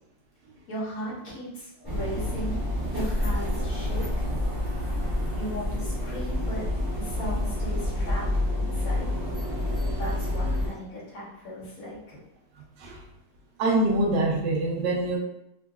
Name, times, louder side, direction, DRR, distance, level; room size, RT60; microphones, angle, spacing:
voice 1, 0.7-2.6 2.9-4.3 5.4-6.6 6.9-8.3 8.5-9.1 10.0-12.2, equal, 50° left, -7 dB, 1.6 m, -37 dB
sound 1, 1.8-10.7, left 1 dB, 25° right, 0.5 m, -28 dB
voice 2, 13.6-15.2, right 2 dB, 70° right, -3 dB, 1.3 m, -24 dB
3.6 x 3.0 x 2.3 m, 0.82 s
omnidirectional pair, 2.0 m